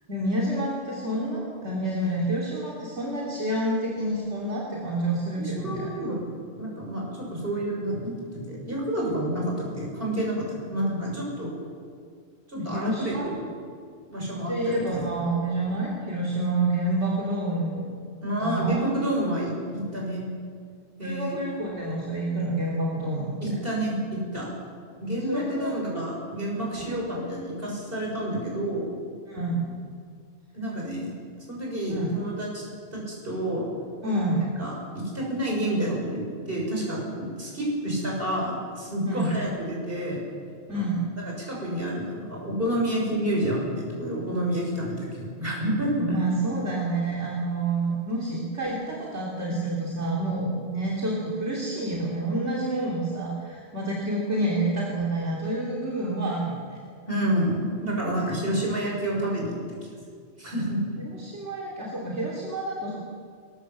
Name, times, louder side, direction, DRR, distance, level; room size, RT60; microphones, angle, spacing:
voice 1, 0.1-5.9 12.6-13.3 14.5-17.9 18.4-18.8 21.0-23.6 25.3-25.7 29.3-29.7 31.9-32.1 34.0-34.5 39.0-39.4 40.7-41.0 46.0-56.8 61.2-63.0, right 2 dB, 75° right, -4 dB, 3.5 m, -28 dB
voice 2, 5.3-6.2 6.6-11.5 12.5-13.5 14.1-15.0 18.2-20.2 21.0-21.4 23.4-24.5 25.0-28.9 30.5-31.2 31.5-32.6 32.9-33.7 34.6-40.2 40.7-46.2 57.1-59.8 60.4-60.8, right 1 dB, 55° right, -3 dB, 7.0 m, -29 dB
22.5 x 19.5 x 7.5 m, 2.1 s
omnidirectional pair, 1.2 m